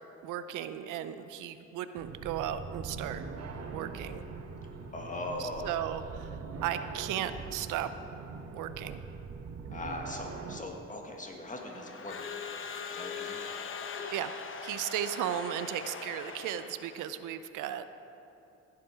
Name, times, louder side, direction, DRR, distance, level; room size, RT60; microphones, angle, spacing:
voice 1, 0.2-3.2 3.7-4.3 5.4-6.4 6.6-7.9 8.5-9.0 13.4-13.6 14.1-17.9, right 11 dB, 90° right, 11 dB, 0.6 m, -36 dB
sound 1, 2.0-10.6, right 4 dB, 55° right, 1.0 m, -42 dB
voice 2, 4.9-5.7 9.7-12.2 12.9-13.5, left 2 dB, 25° left, 1 dB, 1.7 m, -40 dB
Crowd / Alarm, 11.5-17.1, left 6 dB, 40° left, 1.0 m, -41 dB
15.5 x 7.5 x 4.7 m, 2.9 s
cardioid pair, 90°, 30 cm